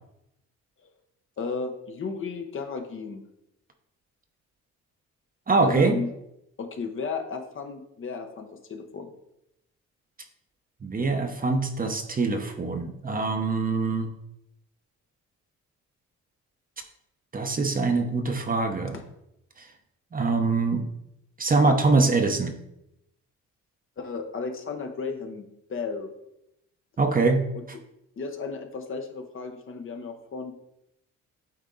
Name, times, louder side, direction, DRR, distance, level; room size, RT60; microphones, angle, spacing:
voice 1, 1.4-3.2 5.6-6.1 6.6-9.1 18.9-19.0 24.0-26.1 27.5-27.6 28.2-30.5, left 4 dB, 45° left, 5 dB, 1.0 m, -34 dB
voice 2, 5.5-5.9 10.8-14.1 17.3-18.9 20.1-20.8 21.4-22.5 27.0-27.4, right 3 dB, 30° right, 5 dB, 0.9 m, -23 dB
8.7 x 3.6 x 3.9 m, 0.82 s
cardioid pair, 90°, 30 cm